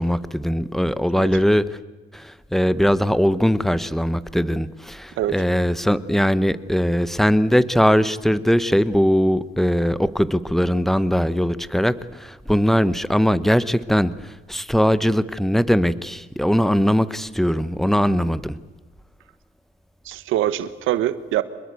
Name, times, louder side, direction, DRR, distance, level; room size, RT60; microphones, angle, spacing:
voice 1, 0.0-1.7 2.1-18.6, equal, ahead, 15 dB, 1.0 m, -20 dB
voice 2, 20.0-21.4, right 12 dB, 90° right, 13 dB, 1.3 m, -23 dB
25.5 x 21.0 x 8.3 m, 1.2 s
cardioid pair, 90°, 20 cm